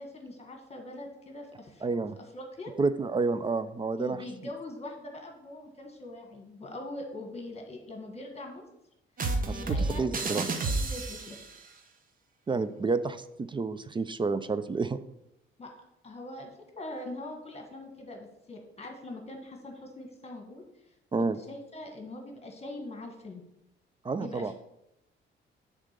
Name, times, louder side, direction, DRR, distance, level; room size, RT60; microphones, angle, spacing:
voice 1, 0.0-1.8 2.3-2.7 4.0-8.6 9.5-11.4 15.6-15.7 16.0-16.5 16.7-20.6 21.5-23.4 24.2-24.5, left 1 dB, 30° left, 2 dB, 1.5 m, -42 dB
voice 2, 1.8-2.2 2.8-4.2 9.5-10.5 12.5-15.0 21.1-21.4 24.0-24.5, right 4 dB, 25° right, 13 dB, 0.4 m, -29 dB
sound 1, 9.2-11.5, right 3 dB, 45° right, 1.0 m, -30 dB
7.6 x 3.7 x 6.6 m, 0.86 s
cardioid pair, 90°, 20 cm